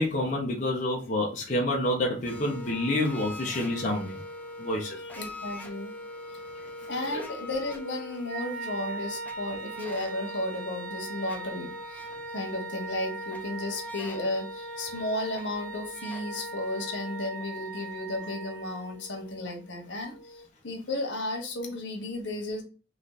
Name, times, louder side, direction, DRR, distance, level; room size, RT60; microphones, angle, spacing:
voice 1, 0.0-4.2 4.6-5.0 7.1-7.2, left 1 dB, 40° left, -2 dB, 0.9 m, -28 dB
sound 1, 2.3-20.5, left 1 dB, 10° left, 0.6 m, -43 dB
voice 2, 5.0-5.9 6.3-6.4 6.9-22.6, left 1 dB, 75° left, 2 dB, 1.4 m, -34 dB
Wind instrument woodwind instrument, 8.2-19.0, right 4 dB, 50° right, 1.8 m, -41 dB
3.9 x 3.2 x 4.0 m, 0.35 s
head